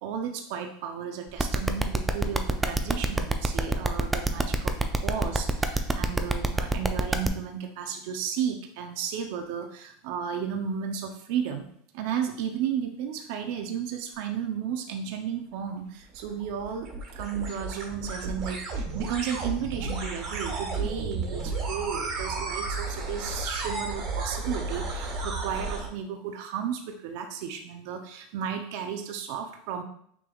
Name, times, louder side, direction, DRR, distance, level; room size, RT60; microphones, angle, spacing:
voice 1, 0.0-11.6 11.9-29.8, right 8 dB, 65° right, 4 dB, 0.5 m, -33 dB
sound 1, 1.4-7.3, right 2 dB, 10° right, 0.4 m, -25 dB
sound 2, 16.0-25.9, right 3 dB, 45° right, 1.4 m, -33 dB
5.9 x 3.4 x 2.3 m, 0.67 s
supercardioid pair, 130°, 0 cm